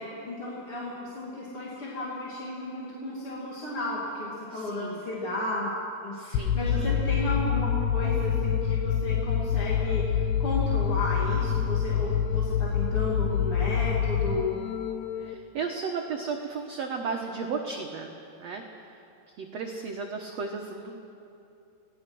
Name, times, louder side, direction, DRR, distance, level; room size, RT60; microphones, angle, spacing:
voice 1, 0.0-5.7 6.0-14.6, left 2 dB, 35° left, -6 dB, 3.1 m, -33 dB
voice 2, 4.5-5.0 6.1-7.0 15.2-18.1 18.4-18.6 19.4-21.0, right 5 dB, 75° right, 2 dB, 1.5 m, -34 dB
sound 1, 6.3-15.3, left 7 dB, 85° left, 3.0 m, -26 dB
27.0 x 18.0 x 6.2 m, 2.8 s
omnidirectional pair, 4.8 m